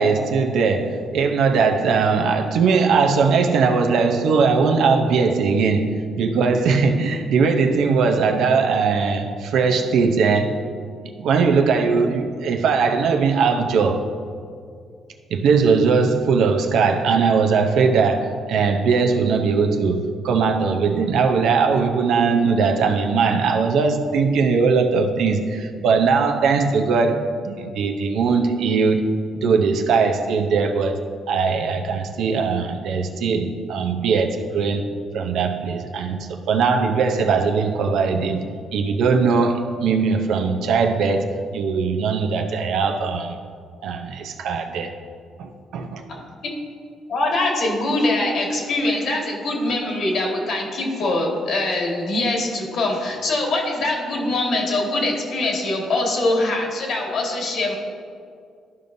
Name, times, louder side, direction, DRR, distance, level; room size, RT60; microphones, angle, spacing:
voice 1, 0.0-10.6 11.2-14.1 15.3-29.1 29.4-31.0 31.3-34.9 35.1-38.4 38.7-43.4 43.8-44.9 45.4-46.0, right 5 dB, 80° right, 4 dB, 0.6 m, -20 dB
voice 2, 47.1-57.7, left 2 dB, 70° left, -1 dB, 1.7 m, -23 dB
12.5 x 5.3 x 2.6 m, 2.3 s
cardioid pair, 90°, 0 cm